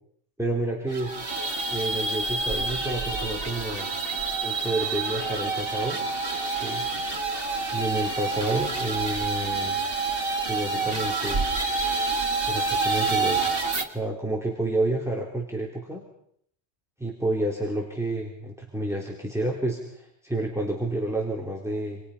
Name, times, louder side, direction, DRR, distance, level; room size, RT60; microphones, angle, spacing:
voice 1, 0.4-1.1 1.7-3.9 4.4-6.0 6.5-6.8 7.7-9.8 10.5-11.4 12.5-13.4 13.9-16.0 17.0-22.0, right 1 dB, ahead, -1 dB, 3.7 m, -29 dB
sound 1, 0.9-13.8, right 3 dB, 60° right, 2.5 m, -28 dB
sound 2, 2.2-6.4 6.7-10.4 10.8-12.7, right 4 dB, 90° right, 1.8 m, -39 dB
30.0 x 27.0 x 5.7 m, 0.69 s
omnidirectional pair, 1.1 m